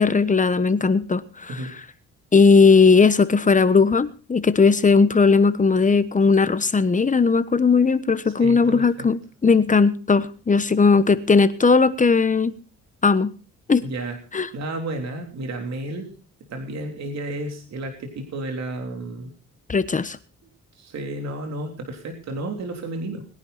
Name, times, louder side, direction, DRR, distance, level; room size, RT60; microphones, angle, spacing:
voice 1, 0.0-1.5 2.3-12.5 13.0-13.3 13.7-13.8 14.3-14.5 19.7-20.2, left 4 dB, 25° left, 13 dB, 1.2 m, -17 dB
voice 2, 8.2-9.1 13.8-14.2 14.5-16.1 16.5-19.3 20.8-23.3, right 2 dB, 60° right, 3 dB, 3.4 m, -32 dB
21.0 x 10.5 x 4.2 m, 0.38 s
cardioid pair, 90°, 30 cm